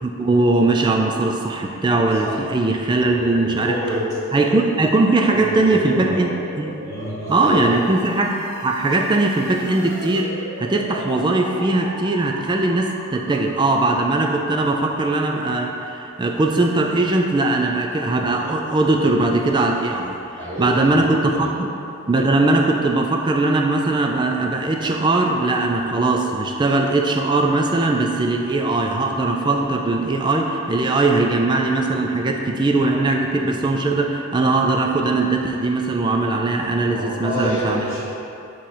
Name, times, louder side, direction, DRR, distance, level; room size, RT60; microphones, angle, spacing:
voice 1, 0.0-3.8 4.3-6.3 6.6-6.8 7.3-20.2 20.6-21.7 22.1-37.8, right 2 dB, 20° right, 2 dB, 0.3 m, -20 dB
voice 2, 2.9-4.1 5.3-6.2 6.8-7.7 20.4-21.1 21.3-21.5 36.8-38.0, right 1 dB, 15° left, -12 dB, 1.4 m, -28 dB
sound 1, 6.4-13.8, right 1 dB, 85° right, 1.1 m, -37 dB
7.8 x 3.0 x 4.2 m, 2.8 s
head